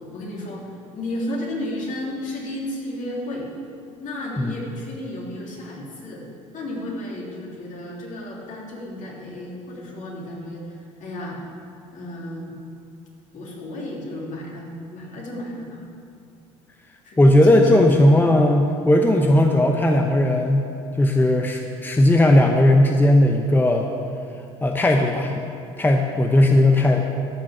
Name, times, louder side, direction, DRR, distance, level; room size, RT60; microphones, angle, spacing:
voice 1, 0.1-0.6 0.9-3.5 4.0-6.2 6.5-11.4 11.9-12.6 13.3-15.8 17.0-17.8, left 1 dB, 50° left, -3 dB, 3.1 m, -33 dB
voice 2, 17.2-20.6 21.0-23.9 24.6-25.3 25.8-27.0, left 1 dB, 10° left, 3 dB, 0.8 m, -17 dB
12.5 x 6.1 x 6.1 m, 2.5 s
hypercardioid pair, 70°, 16 cm